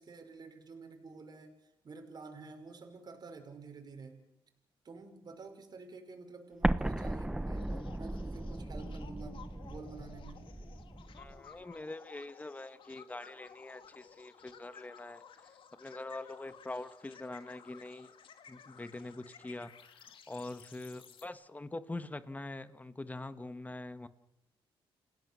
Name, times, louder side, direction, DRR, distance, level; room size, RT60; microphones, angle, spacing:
voice 1, 0.0-4.2 4.8-9.4 9.6-10.5, right 4 dB, 45° right, 4 dB, 5.4 m, -50 dB
Explosion, 6.6-11.4, right 1 dB, 10° right, 1.0 m, -36 dB
sound 1, 7.5-21.3, left 7 dB, 65° left, 2.5 m, -56 dB
voice 2, 11.2-15.5 15.8-18.1 18.5-24.1, left 2 dB, 15° left, 11 dB, 1.7 m, -44 dB
30.0 x 18.0 x 7.0 m, 0.89 s
cardioid pair, 105°, 10 cm